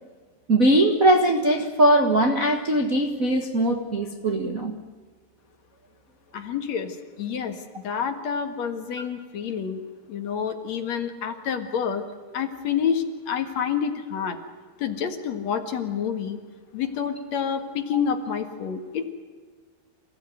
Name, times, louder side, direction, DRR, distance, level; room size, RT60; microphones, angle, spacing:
voice 1, 0.5-4.7, right 1 dB, 70° right, 2 dB, 0.8 m, -20 dB
voice 2, 6.3-12.0 12.3-14.4 14.8-16.4 16.7-19.1, left 7 dB, 55° left, 6 dB, 2.6 m, -28 dB
28.0 x 16.0 x 9.3 m, 1.5 s
omnidirectional pair, 4.5 m